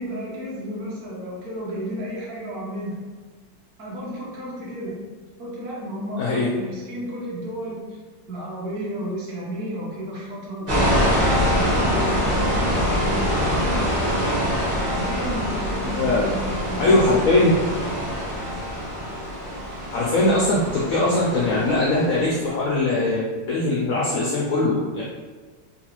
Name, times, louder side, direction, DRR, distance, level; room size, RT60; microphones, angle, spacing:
voice 1, 0.0-3.0 3.8-5.1 5.4-8.0 8.3-11.1 11.5-13.9 14.7-17.2, equal, 60° right, -5 dB, 1.3 m, -32 dB
voice 2, 6.2-6.6 16.0-16.3 16.8-17.5 19.9-25.0, left 2 dB, 85° left, -5 dB, 0.7 m, -21 dB
sound 1, 10.7-22.4, equal, 40° right, 0.9 m, -24 dB
3.9 x 2.3 x 2.9 m, 1.4 s
omnidirectional pair, 2.0 m